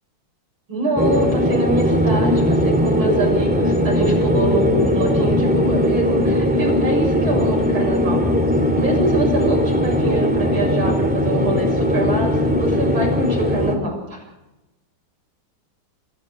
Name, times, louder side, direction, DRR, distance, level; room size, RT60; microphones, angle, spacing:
voice 1, 0.7-8.2 8.7-14.2, right 2 dB, 65° right, 0 dB, 7.9 m, -24 dB
sound 1, 1.0-13.7, left 1 dB, 5° right, 2.5 m, -19 dB
25.0 x 14.0 x 7.6 m, 0.98 s
omnidirectional pair, 2.4 m